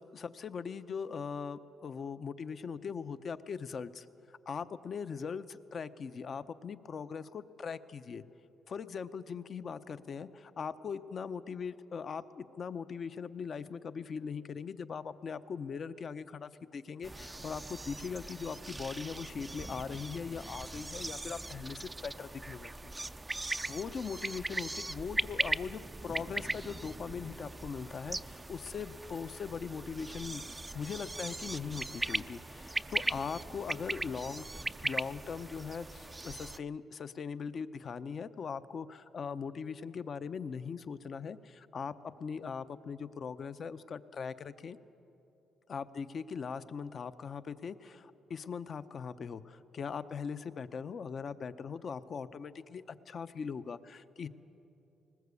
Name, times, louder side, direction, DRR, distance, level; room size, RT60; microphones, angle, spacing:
voice 1, 0.0-4.1 4.5-8.2 8.7-23.0 23.7-30.4 30.7-34.5 34.8-41.9 42.2-44.8 45.7-54.3, left 6 dB, 50° left, 12 dB, 0.7 m, -40 dB
sound 1, 17.0-36.6, right 2 dB, 15° right, 0.5 m, -39 dB
20.0 x 19.5 x 8.3 m, 2.9 s
cardioid pair, 90°, 0 cm